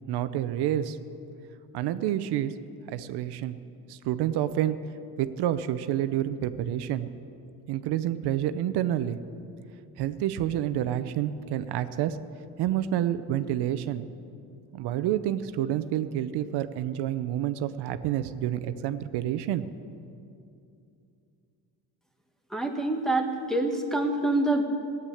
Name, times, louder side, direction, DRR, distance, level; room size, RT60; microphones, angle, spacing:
voice 1, 0.1-1.0 1.7-2.5 2.9-3.6 3.9-4.8 5.2-7.1 7.7-9.2 10.0-12.2 12.6-14.0 14.7-19.7, right 11 dB, 85° right, 12 dB, 0.8 m, -28 dB
voice 2, 22.5-24.6, right 2 dB, ahead, 1 dB, 1.3 m, -26 dB
16.5 x 8.3 x 9.9 m, 2.6 s
cardioid pair, 140°, 39 cm